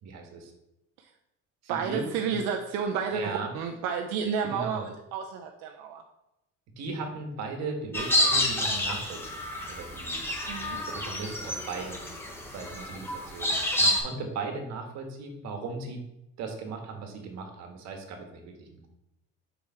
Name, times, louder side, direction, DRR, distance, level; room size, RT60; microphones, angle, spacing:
voice 1, 0.0-0.5 1.6-2.4 3.1-3.5 4.5-4.9 6.8-10.2 10.7-12.0 12.5-16.0 16.4-18.9, right 4 dB, 60° right, 3 dB, 1.6 m, -37 dB
voice 2, 1.7-6.0 10.5-10.8, right 6 dB, 85° right, 3 dB, 0.7 m, -31 dB
sound 1, 7.9-14.0, left 1 dB, 5° left, 1.1 m, -29 dB
5.0 x 4.8 x 5.7 m, 0.88 s
cardioid pair, 140°, 31 cm